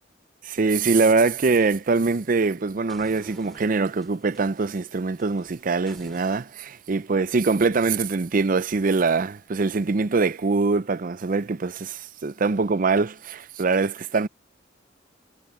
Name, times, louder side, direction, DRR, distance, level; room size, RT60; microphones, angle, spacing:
voice 1, 0.5-14.3, right 4 dB, 50° right, 0.5 m, -23 dB
sound 1, 1.0-2.5 2.9-6.4, equal, ahead, 6.2 m, -52 dB
head